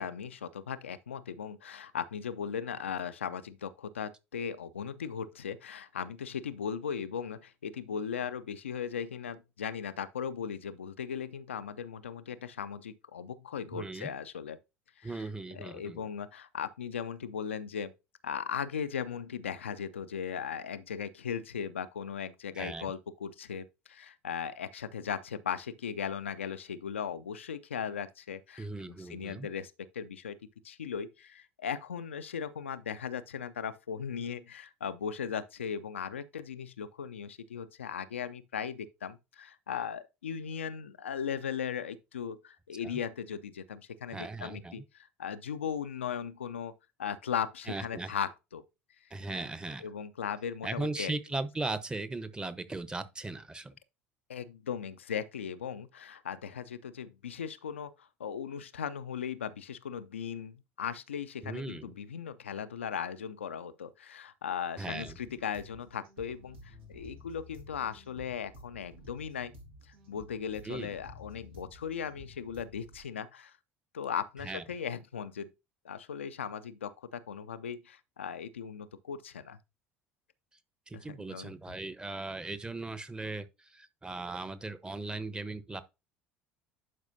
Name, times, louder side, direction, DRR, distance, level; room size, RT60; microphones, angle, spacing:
voice 1, 0.0-14.6 15.0-15.3 15.5-17.9 18.2-28.7 29.0-30.4 30.6-46.7 47.0-48.6 49.8-51.1 54.3-69.5 70.1-73.5 73.9-75.5 75.8-79.6 80.9-81.5, left 7 dB, 85° left, 0.5 m, -38 dB
voice 2, 13.7-14.1 15.0-16.1 22.6-22.9 28.6-29.5 42.8-43.0 44.1-44.8 47.7-48.2 49.1-49.9 50.6-53.7 61.4-61.9 64.8-65.2 70.6-70.9 74.4-74.6 80.9-85.8, right 2 dB, 15° right, 0.9 m, -38 dB
sound 1, 65.0-73.0, left 1 dB, 80° right, 1.8 m, -52 dB
11.0 x 4.8 x 2.7 m
figure-of-eight pair, 65°, 6 cm